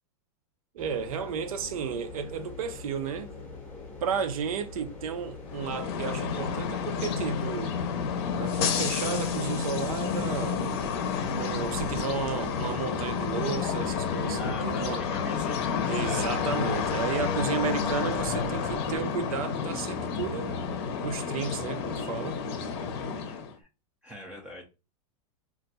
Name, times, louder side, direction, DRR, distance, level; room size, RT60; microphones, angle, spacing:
voice 1, 0.7-3.3 4.0-7.8 8.4-10.7 11.3-15.1 15.9-20.6 21.0-22.4, right 6 dB, 85° right, 0.7 m, -33 dB
sound 1, 0.8-19.0, left 3 dB, 10° left, 0.7 m, -44 dB
sound 2, 5.4-23.5, left 6 dB, 45° left, 0.6 m, -30 dB
voice 2, 14.4-16.3 23.3-23.7 24.0-24.6, left 1 dB, 5° right, 0.4 m, -43 dB
2.4 x 2.2 x 4.0 m
supercardioid pair, 165°, 18 cm